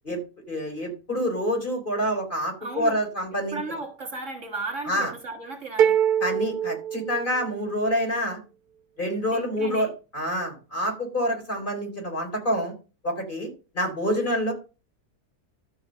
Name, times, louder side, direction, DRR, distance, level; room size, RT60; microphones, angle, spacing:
voice 1, 0.5-3.6 4.9-5.1 6.2-8.4 9.0-12.7 13.0-14.5, equal, 30° left, 4.1 m, -27 dB
voice 2, 2.6-3.0 3.5-6.0 9.3-9.9, right 3 dB, 50° right, 1.8 m, -35 dB
sound 1, 5.8-7.8, right 9 dB, 75° right, 1.3 m, -24 dB
12.5 x 5.6 x 6.5 m
omnidirectional pair, 1.7 m